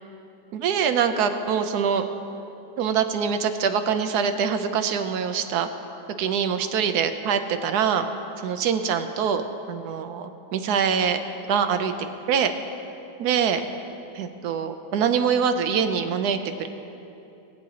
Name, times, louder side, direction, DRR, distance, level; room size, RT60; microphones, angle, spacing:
voice 1, 0.5-2.0 2.8-5.7 6.2-8.1 8.4-11.2 11.5-11.9 12.3-12.5 13.2-13.6 14.1-16.7, right 7 dB, 70° right, 8 dB, 0.9 m, -24 dB
19.5 x 8.9 x 2.8 m, 2.8 s
omnidirectional pair, 2.1 m